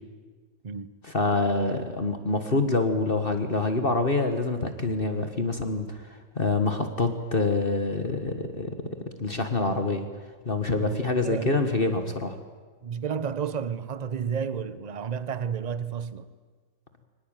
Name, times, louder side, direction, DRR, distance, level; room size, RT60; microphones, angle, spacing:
voice 1, 1.0-8.7 9.2-10.1 10.4-12.4, left 3 dB, 35° left, 1.6 m, -26 dB
voice 2, 10.8-11.5 12.8-16.3, right 7 dB, 35° right, 0.7 m, -31 dB
24.0 x 19.5 x 9.0 m
omnidirectional pair, 1.9 m